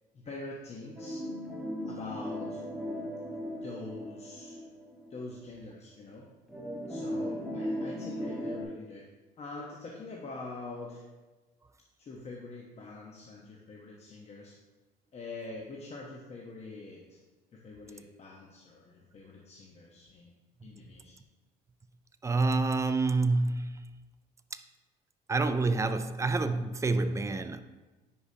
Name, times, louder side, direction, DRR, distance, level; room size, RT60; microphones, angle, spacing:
voice 1, 0.1-1.2 1.9-2.6 3.6-4.6 5.1-6.3 6.9-9.0 9.4-11.0 12.0-14.6 15.1-17.2 17.6-20.3 20.6-21.1, left 3 dB, 40° left, 1.0 m, -44 dB
sound 1, 1.0-5.3 5.7-5.8 6.5-8.6, equal, ahead, 1.3 m, -37 dB
voice 2, 22.2-23.9 25.3-27.6, right 3 dB, 15° right, 0.4 m, -28 dB
10.0 x 4.9 x 2.8 m
cardioid pair, 110°, 17 cm